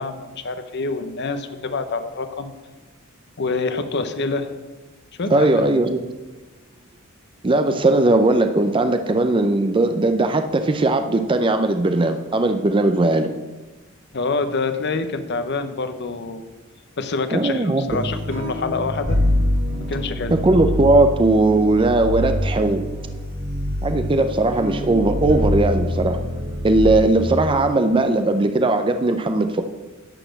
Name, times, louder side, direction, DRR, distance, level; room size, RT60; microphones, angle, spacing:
voice 1, 0.0-2.5 3.4-4.5 5.2-5.7 14.1-16.4 17.0-19.2 19.9-20.4, left 3 dB, 55° left, 9 dB, 0.8 m, -26 dB
voice 2, 5.3-6.0 7.4-13.3 17.3-18.0 20.3-22.8 23.8-26.2 26.6-29.6, right 2 dB, 25° right, 7 dB, 0.5 m, -18 dB
sound 1, 17.9-27.3, left 1 dB, 55° right, 3.4 m, -25 dB
11.5 x 4.2 x 7.9 m, 1.2 s
head